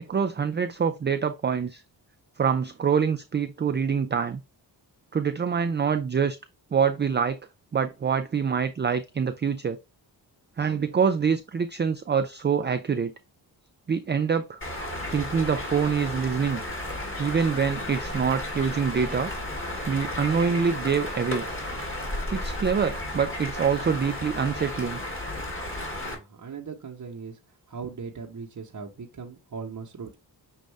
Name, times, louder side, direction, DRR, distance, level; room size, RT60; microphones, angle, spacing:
voice 1, 0.1-1.8 2.4-4.4 5.1-6.4 6.7-7.4 7.7-9.8 10.6-13.1 13.9-14.6 15.1-16.6 17.2-19.3 19.9-21.5 22.3-25.0, right 6 dB, 25° right, 0.4 m, -25 dB
sound 1, 14.6-26.1, left 1 dB, 25° left, 2.1 m, -33 dB
voice 2, 26.0-27.4 27.7-30.1, right 5 dB, 45° right, 0.9 m, -39 dB
6.3 x 2.5 x 3.3 m
cardioid pair, 55°, 44 cm